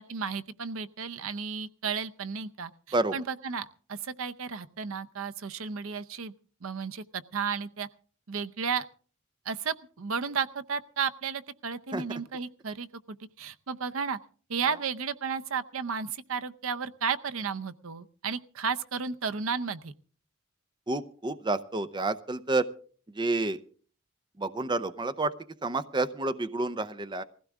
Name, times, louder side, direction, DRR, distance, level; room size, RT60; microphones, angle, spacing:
voice 1, 0.0-6.3 6.6-7.9 8.3-8.9 9.5-12.9 13.4-14.2 14.5-19.9, right 6 dB, 80° right, 12 dB, 0.7 m, -33 dB
voice 2, 20.9-22.7 23.1-23.6 24.4-25.3 25.6-27.2, right 2 dB, 20° right, 12 dB, 0.6 m, -29 dB
20.5 x 15.5 x 3.6 m, 0.43 s
head